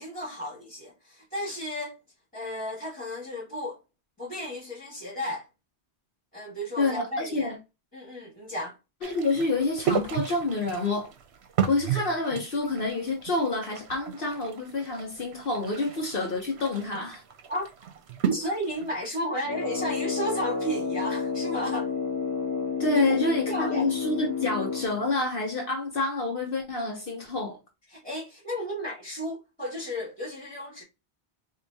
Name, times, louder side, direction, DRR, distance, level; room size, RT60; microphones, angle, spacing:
voice 1, 0.0-1.9 2.3-3.8 4.2-5.5 6.3-7.5 7.9-8.8 17.5-17.6 18.3-21.9 23.1-23.2 23.5-23.9 27.9-30.8, equal, 5° left, 1.9 m, -33 dB
voice 2, 6.8-7.6 9.0-11.1 11.7-17.2 22.8-27.6, left 3 dB, 55° left, 1.0 m, -28 dB
sound 1, 9.0-19.1, right 8 dB, 80° right, 0.9 m, -33 dB
Brass instrument, 19.4-25.0, left 5 dB, 25° left, 0.5 m, -30 dB
4.4 x 2.7 x 2.7 m
omnidirectional pair, 1.1 m